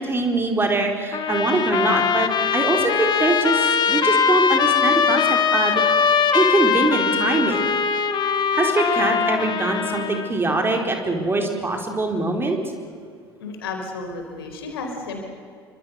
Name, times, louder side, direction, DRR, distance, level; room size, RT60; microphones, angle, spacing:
voice 1, 0.0-5.8 6.3-7.6 8.5-12.6, right 2 dB, 15° right, 3 dB, 4.3 m, -22 dB
Trumpet, 1.1-10.3, left 6 dB, 35° left, 2.0 m, -21 dB
voice 2, 13.4-15.2, left 3 dB, 70° left, 3 dB, 4.4 m, -32 dB
28.5 x 24.5 x 6.6 m, 2.2 s
figure-of-eight pair, 65°, 13 cm